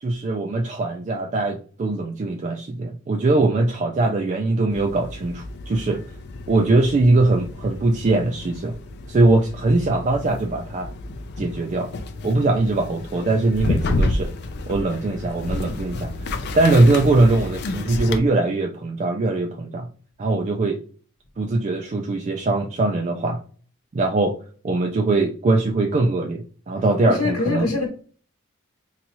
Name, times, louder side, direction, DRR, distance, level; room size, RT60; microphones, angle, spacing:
voice 1, 0.0-6.0 6.5-8.8 9.1-10.9 11.4-11.9 12.2-14.3 14.7-19.9 20.2-20.8 21.4-23.4 23.9-24.4 24.6-27.7, right 2 dB, 30° right, 0.3 m, -21 dB
sound 1, 4.7-18.2, left 2 dB, 50° left, 0.4 m, -30 dB
voice 2, 27.0-27.9, left 4 dB, 80° left, 0.9 m, -23 dB
4.0 x 2.3 x 2.9 m
head